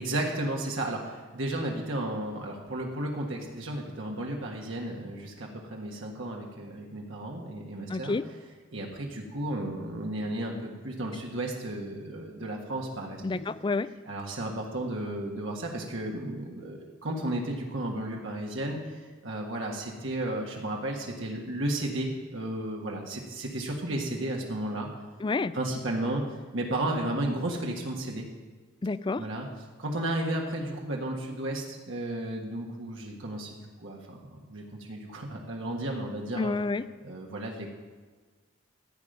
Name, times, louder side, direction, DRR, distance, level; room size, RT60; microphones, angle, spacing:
voice 1, 0.0-8.2 8.7-13.4 14.1-18.8 19.2-24.9 25.5-26.2 26.5-28.3 29.2-29.5 29.8-34.2 34.5-36.5 37.0-37.7, right 1 dB, 75° right, -1 dB, 1.6 m, -33 dB
voice 2, 7.9-8.2 13.2-13.9 25.2-25.5 28.8-29.2 36.4-36.8, left 3 dB, 25° left, 15 dB, 0.3 m, -29 dB
14.5 x 5.2 x 9.1 m, 1.4 s
head